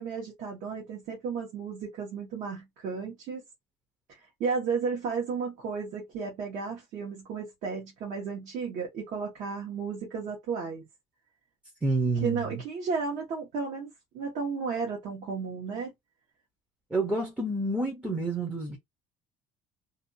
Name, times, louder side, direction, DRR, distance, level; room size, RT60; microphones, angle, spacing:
voice 1, 0.0-3.4 4.1-10.8 12.1-15.9, right 5 dB, 60° right, 1.1 m, -33 dB
voice 2, 11.8-12.6 16.9-18.8, right 2 dB, 5° right, 0.6 m, -28 dB
2.6 x 2.3 x 2.6 m
cardioid pair, 145°, 14 cm